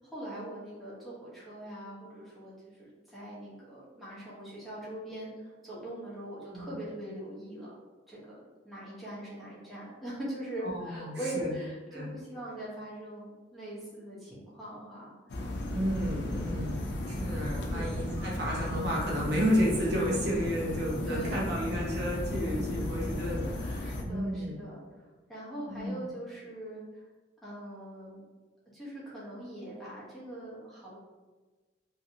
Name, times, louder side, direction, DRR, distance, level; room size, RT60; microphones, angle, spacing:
voice 1, 0.0-7.7 8.1-15.1 16.4-16.8 17.7-18.0 21.1-21.6 23.8-24.8 25.3-26.8 27.4-28.2 28.7-31.0, right 1 dB, ahead, -9 dB, 1.0 m, -42 dB
voice 2, 10.6-11.5 11.9-12.1 15.6-16.8 17.1-24.5 25.7-26.0, equal, 65° right, -4 dB, 0.8 m, -32 dB
sound 1, 15.3-24.0, left 1 dB, 65° left, 0.5 m, -35 dB
2.9 x 2.7 x 2.7 m, 1.3 s
head